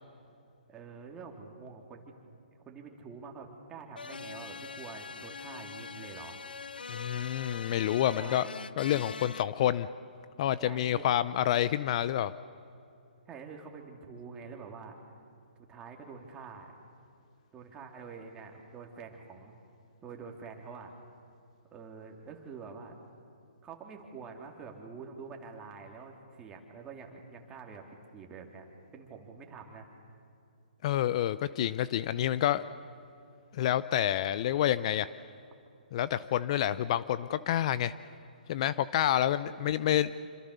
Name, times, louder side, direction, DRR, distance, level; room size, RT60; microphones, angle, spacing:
voice 1, 0.7-2.0 2.6-6.4 8.1-8.6 10.6-11.1 13.3-15.0 15.7-16.7 17.5-19.5 20.0-20.9 21.7-22.9 23.6-27.8 28.1-28.6 28.9-30.2 39.4-39.7, right 5 dB, 15° right, 1 dB, 3.2 m, -46 dB
sound 1, 4.0-9.4, left 5 dB, 80° left, 0.8 m, -43 dB
voice 2, 6.9-8.5 8.8-9.9 10.4-12.3 30.8-32.7 33.5-35.1 35.9-37.9 38.5-40.1, left 11 dB, 45° left, 16 dB, 0.6 m, -28 dB
27.0 x 25.5 x 6.9 m, 2.6 s
hypercardioid pair, 135°, 5 cm